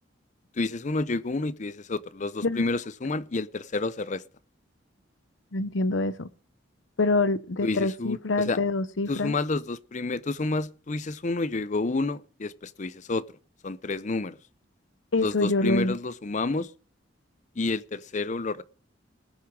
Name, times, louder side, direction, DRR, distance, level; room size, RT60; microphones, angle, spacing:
voice 1, 0.6-4.2 7.6-8.2 8.5-8.6 9.1-13.2 13.6-14.4 15.2-16.7 17.6-18.6, left 3 dB, 40° left, 0.6 m, -29 dB
voice 2, 5.5-6.3 7.0-9.3 15.1-16.0, left 2 dB, 80° left, 0.8 m, -26 dB
19.5 x 7.1 x 4.8 m
head